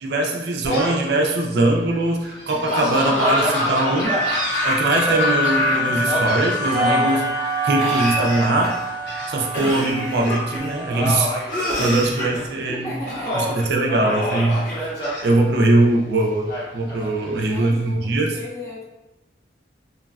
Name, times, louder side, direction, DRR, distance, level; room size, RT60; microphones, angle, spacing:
voice 1, 0.0-4.1 4.6-8.8 9.3-11.3 11.8-12.9 13.3-14.6 15.2-18.3, right 2 dB, 65° right, 1 dB, 0.4 m, -21 dB
Gull seagull, 0.6-1.1 1.6-1.7 2.2-5.2 6.1-7.2 7.7-8.2 9.0-9.7 10.1-10.3 10.9-12.4 12.8-13.5 13.9-15.2 16.5-17.5, equal, 70° left, 1.1 m, -29 dB
Laughter / Cough, 2.7-6.0 6.2-7.1 7.8-8.9 9.5-10.7 11.5-12.4 13.1-13.6 14.1-15.3, left 1 dB, 50° left, 1.2 m, -26 dB
sound 1, 4.0-11.1, right 1 dB, 20° right, 0.7 m, -25 dB
voice 2, 12.7-13.7 17.4-18.8, equal, 15° left, -6 dB, 0.5 m, -34 dB
3.1 x 2.1 x 2.3 m, 0.98 s
head